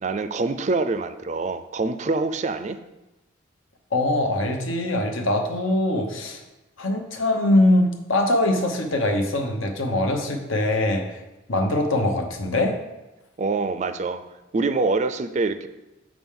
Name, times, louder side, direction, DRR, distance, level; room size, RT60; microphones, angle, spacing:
voice 1, 0.0-2.8 13.4-14.2 14.5-15.7, right 3 dB, 35° right, 11 dB, 0.4 m, -25 dB
voice 2, 3.9-6.4 6.8-11.2 11.5-12.8, left 1 dB, 75° left, 4 dB, 1.0 m, -22 dB
7.4 x 6.1 x 3.7 m, 1.0 s
head